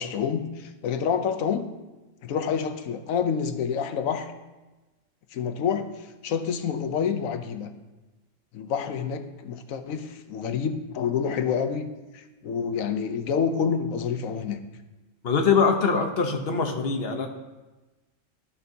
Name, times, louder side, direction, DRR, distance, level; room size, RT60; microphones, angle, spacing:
voice 1, 0.0-1.7 2.2-4.3 5.3-7.7 8.5-14.6, left 7 dB, 85° left, 7 dB, 1.1 m, -28 dB
voice 2, 15.2-17.3, left 5 dB, 50° left, 4 dB, 1.1 m, -23 dB
13.0 x 5.5 x 2.7 m, 1.1 s
omnidirectional pair, 1.4 m